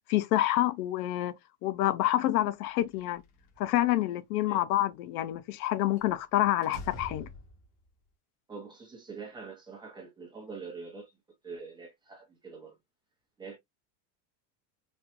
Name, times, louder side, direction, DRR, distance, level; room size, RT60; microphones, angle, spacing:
voice 1, 0.1-1.3 1.6-3.2 3.6-7.3, left 14 dB, 65° left, 0.6 m, -27 dB
Slam, 2.8-3.8 6.0-6.2 6.6-7.8, left 2 dB, 85° left, 1.9 m, -45 dB
voice 2, 8.5-11.1 11.4-12.7 13.4-13.6, right 4 dB, 10° right, 0.7 m, -44 dB
4.4 x 2.3 x 2.5 m
cardioid pair, 175°, 49 cm